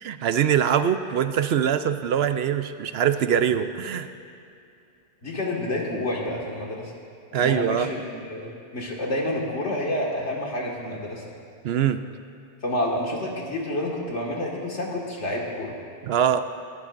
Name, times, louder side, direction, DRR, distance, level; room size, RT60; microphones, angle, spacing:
voice 1, 0.0-4.1 7.3-7.9 11.6-12.0 16.0-16.4, right 9 dB, 70° right, 10 dB, 0.8 m, -23 dB
voice 2, 5.2-6.9 7.3-11.2 12.6-15.8, left 1 dB, 80° left, -2 dB, 2.2 m, -29 dB
19.0 x 14.5 x 2.6 m, 2.6 s
omnidirectional pair, 1.2 m